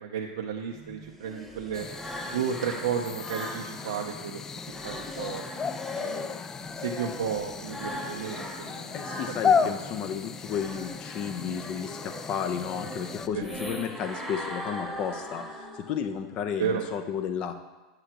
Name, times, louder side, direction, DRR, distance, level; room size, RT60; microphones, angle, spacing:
voice 1, 0.0-1.9 2.3-4.4 4.8-5.4 6.0-6.4 6.8-9.8 13.3-13.5 16.6-16.8, right 7 dB, 85° right, -1 dB, 0.6 m, -33 dB
sound 1, 0.7-4.1 4.5-9.9 10.3-16.1, equal, 5° left, 1.4 m, -40 dB
sound 2, 1.7-13.3, left 6 dB, 25° left, 0.3 m, -33 dB
voice 2, 8.9-17.5, left 8 dB, 45° left, 7 dB, 0.7 m, -33 dB
8.6 x 7.8 x 2.9 m, 1.2 s
hypercardioid pair, 105°, 2 cm